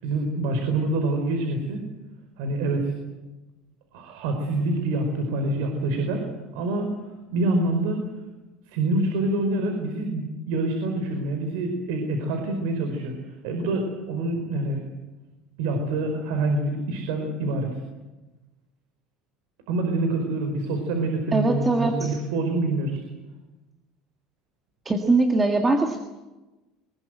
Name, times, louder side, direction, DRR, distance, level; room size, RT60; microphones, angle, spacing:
voice 1, 0.0-1.8 2.4-2.9 3.9-6.3 6.5-6.9 7.3-8.0 8.7-13.1 13.4-14.8 15.6-17.8 19.7-23.0, right 2 dB, 75° right, 5 dB, 4.8 m, -26 dB
voice 2, 21.3-22.1 24.8-26.0, right 2 dB, 15° right, 4 dB, 1.7 m, -21 dB
24.0 x 21.0 x 7.9 m, 1.1 s
cardioid pair, 175°, 0 cm